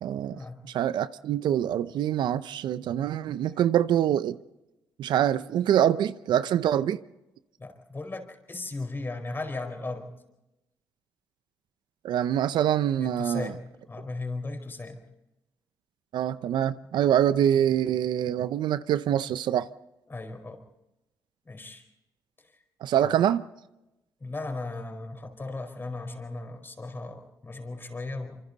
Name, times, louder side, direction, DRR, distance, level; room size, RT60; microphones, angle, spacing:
voice 1, 0.0-0.4 0.6-4.4 5.0-7.0 12.0-13.5 16.1-19.7 22.8-23.4, right 10 dB, 75° right, 0.7 m, -25 dB
voice 2, 7.6-10.1 13.0-15.0 20.1-20.6 21.4-21.8 22.4-22.5 23.0-23.2 24.2-28.4, left 2 dB, 30° left, 4.7 m, -36 dB
26.0 x 25.0 x 4.1 m
supercardioid pair, 70°, 8 cm